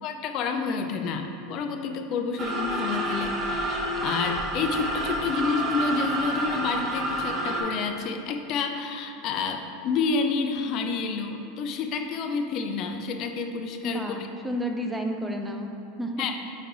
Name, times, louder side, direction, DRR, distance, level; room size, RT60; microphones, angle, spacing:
voice 1, 0.0-14.2 16.2-16.3, left 5 dB, 50° left, 5 dB, 0.5 m, -29 dB
sound 1, 2.4-7.6, right 1 dB, 40° right, 1.1 m, -29 dB
voice 2, 13.8-15.7 16.0-16.3, equal, 10° right, 3 dB, 0.6 m, -31 dB
8.7 x 3.3 x 3.9 m, 2.8 s
hypercardioid pair, 100°, 0 cm